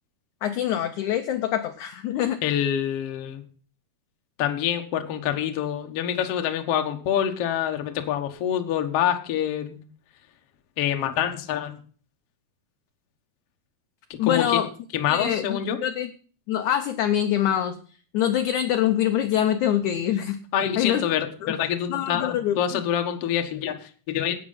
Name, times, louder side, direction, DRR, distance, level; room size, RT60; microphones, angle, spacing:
voice 1, 0.4-2.4 14.2-14.7 15.1-16.1 16.5-17.8 18.1-20.4 20.8-21.0 21.4-21.5 21.9-22.8, left 10 dB, 75° left, 7 dB, 1.8 m, -24 dB
voice 2, 2.4-3.4 4.4-9.8 10.8-11.8 14.2-14.6 14.9-15.8 20.5-24.4, left 10 dB, 60° left, 6 dB, 1.6 m, -26 dB
12.0 x 9.0 x 5.5 m, 0.42 s
omnidirectional pair, 4.5 m